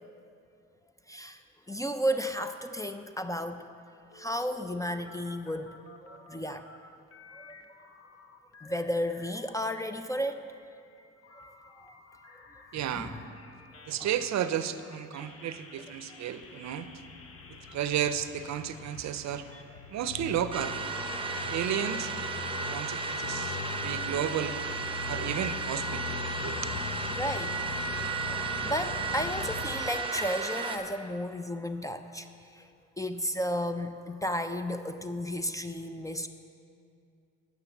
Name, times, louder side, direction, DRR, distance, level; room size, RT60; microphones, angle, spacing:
voice 1, 1.1-1.4 1.7-3.7 4.1-6.7 7.3-7.7 8.6-10.5 11.3-11.9 12.3-12.4 12.9-13.2 14.0-14.1 15.2-15.3 21.3-21.8 27.2-27.8 28.3-32.3 32.5-32.7 33.0-36.3, equal, 10° left, 8 dB, 0.4 m, -34 dB
sound 1, 4.1-6.8 7.1-9.7 10.0-23.2, left 3 dB, 50° left, 1.0 m, -53 dB
voice 2, 12.7-13.1 13.9-16.9 17.5-19.6 19.9-20.8 21.4-22.1 22.6-24.6 25.1-26.1 26.4-26.6, right 9 dB, 65° right, 12 dB, 0.6 m, -33 dB
sound 2, 16.5-30.9, left 8 dB, 75° left, 0.5 m, -42 dB
sound 3, 20.5-30.8, right 4 dB, 15° right, 0.8 m, -34 dB
9.8 x 6.2 x 7.1 m, 2.5 s
cardioid pair, 90°, 30 cm